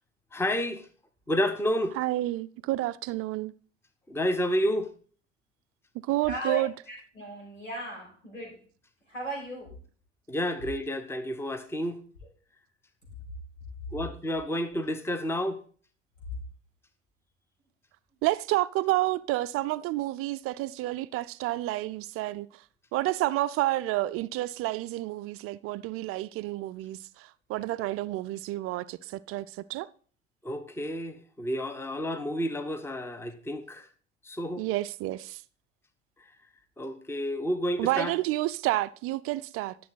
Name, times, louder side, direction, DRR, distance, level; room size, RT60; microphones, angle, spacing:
voice 1, 0.3-0.9 1.3-2.0 4.1-4.9 10.3-12.0 13.9-15.6 30.4-33.9 34.2-34.6 36.8-38.1, equal, 5° left, 1.1 m, -30 dB
voice 2, 2.0-3.5 6.1-6.7 18.2-22.5 22.9-29.9 34.6-35.4 37.8-39.8, right 17 dB, 40° right, 0.5 m, -30 dB
voice 3, 6.2-8.6 9.0-9.7 14.4-14.5, right 2 dB, 90° left, 5.8 m, -37 dB
12.0 x 7.2 x 4.1 m
figure-of-eight pair, 75°, 37 cm